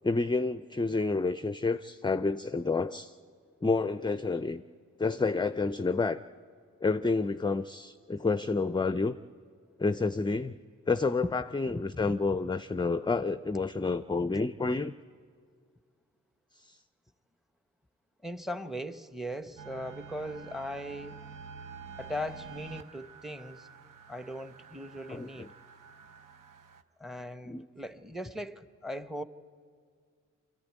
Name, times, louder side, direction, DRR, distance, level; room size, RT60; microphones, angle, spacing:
voice 1, 0.0-3.1 3.6-4.6 5.0-6.2 6.8-9.2 9.8-10.6 10.9-14.9 16.6-16.8 25.1-25.5 27.4-27.6, left 3 dB, 15° left, 0.5 m, -29 dB
voice 2, 11.7-12.1 18.2-21.2 22.0-23.7 24.1-25.5 27.0-29.2, equal, ahead, 0.9 m, -39 dB
sound 1, 19.6-26.8, right 5 dB, 80° right, 0.8 m, -48 dB
24.5 x 14.0 x 9.4 m
supercardioid pair, 40°, 32 cm